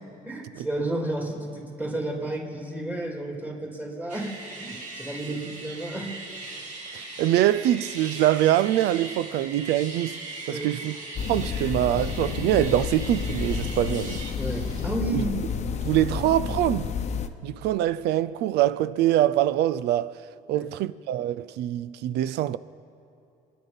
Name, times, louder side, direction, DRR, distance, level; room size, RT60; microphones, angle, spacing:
voice 1, 0.2-4.3 4.6-6.1 10.5-10.7 14.4-15.3 20.5-20.7, right 2 dB, 10° right, 3.2 m, -32 dB
sound 1, 4.1-14.9, right 3 dB, 45° right, 3.7 m, -39 dB
voice 2, 6.9-10.2 10.5-11.0 11.3-14.2 15.1-15.2 15.8-16.9 17.4-20.2 20.5-22.6, right 13 dB, 80° right, 0.5 m, -24 dB
sound 2, 11.2-17.3, left 6 dB, 40° left, 0.9 m, -30 dB
26.0 x 10.5 x 5.3 m
cardioid pair, 110°, 17 cm